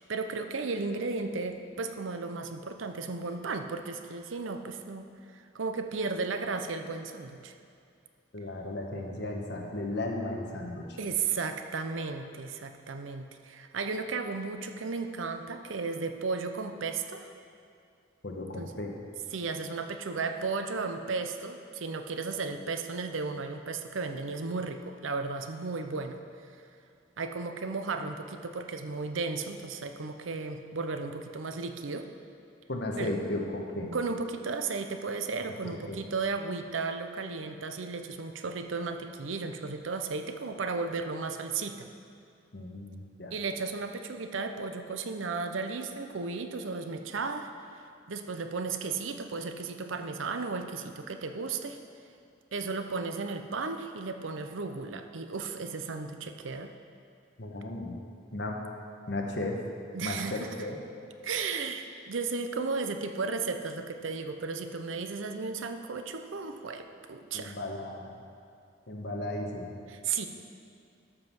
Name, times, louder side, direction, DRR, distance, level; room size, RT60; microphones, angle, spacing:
voice 1, 0.0-5.1 5.3-7.5 11.0-17.3 18.6-18.7 19.3-26.2 27.2-32.1 33.0-33.1 33.9-41.9 43.3-47.5 48.1-51.8 52.5-56.7 59.9-60.5 61.2-67.6 69.9-70.3, right 4 dB, 85° right, 7 dB, 0.7 m, -34 dB
voice 2, 8.3-11.0 18.2-18.9 32.7-33.9 35.6-36.0 42.5-43.3 57.4-58.0 58.3-58.6 59.1-59.6 60.0-60.8 67.3-68.1 68.9-69.8, left 2 dB, 60° left, 0 dB, 1.3 m, -35 dB
12.5 x 5.5 x 6.0 m, 2.5 s
head